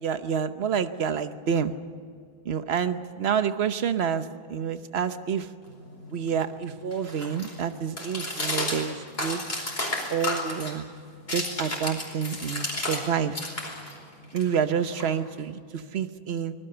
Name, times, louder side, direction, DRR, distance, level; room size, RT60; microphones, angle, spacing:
voice 1, 0.0-1.7 2.4-5.5 6.1-9.4 10.1-10.9 11.3-13.4 14.3-16.5, right 7 dB, 75° right, 10 dB, 1.2 m, -28 dB
sound 1, 5.7-13.1 13.3-15.5, left 1 dB, 70° left, 5.0 m, -33 dB
25.5 x 20.0 x 6.9 m, 2.2 s
omnidirectional pair, 1.1 m